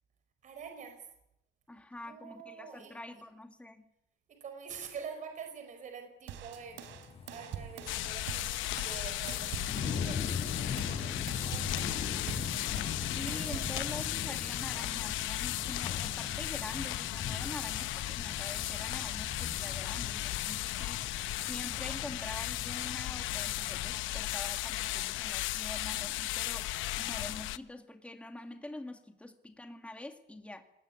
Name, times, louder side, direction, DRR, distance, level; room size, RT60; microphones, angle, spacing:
voice 1, 0.4-1.1 2.0-3.2 4.3-7.0 7.3-12.9 13.4-13.7, right 6 dB, 40° right, 6 dB, 5.0 m, -47 dB
voice 2, 1.7-3.9 13.1-30.6, left 2 dB, 5° left, 6 dB, 2.1 m, -45 dB
sound 1, 6.3-10.1 10.5-14.1, right 9 dB, 80° right, 3.5 m, -45 dB
sound 2, 6.6-24.7 25.2-25.3, left 6 dB, 30° left, 4.8 m, -41 dB
sound 3, 7.9-27.6, left 16 dB, 90° left, 0.9 m, -36 dB
26.0 x 20.0 x 9.7 m, 0.82 s
cardioid pair, 170°, 19 cm